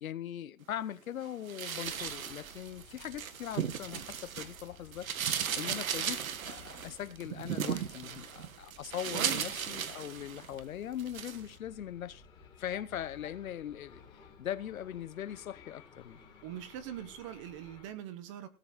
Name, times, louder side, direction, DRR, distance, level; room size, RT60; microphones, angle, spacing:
voice 1, 0.0-5.1 5.5-12.2 12.6-14.0 14.4-16.2, left 10 dB, 80° left, 1.0 m, -40 dB
sound 1, 1.5-4.6 4.9-10.6 11.0-11.4, right 8 dB, 80° right, 1.6 m, -36 dB
sound 2, 1.8-17.9, left 4 dB, 10° left, 2.3 m, -57 dB
voice 2, 9.1-9.4 16.4-18.5, right 10 dB, 25° right, 0.8 m, -41 dB
18.0 x 7.2 x 4.1 m
hypercardioid pair, 160°, 41 cm